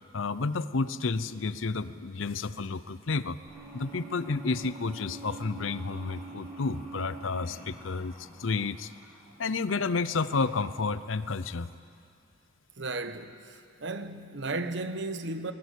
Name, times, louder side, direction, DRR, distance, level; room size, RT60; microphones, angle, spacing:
voice 1, 0.1-3.4 3.7-8.9 9.4-11.7, left 4 dB, 85° left, 0.7 m, -31 dB
sound 1, 3.5-9.8, right 3 dB, 10° right, 6.9 m, -46 dB
voice 2, 12.8-15.5, right 2 dB, 60° right, 1.1 m, -35 dB
21.0 x 20.0 x 8.4 m
head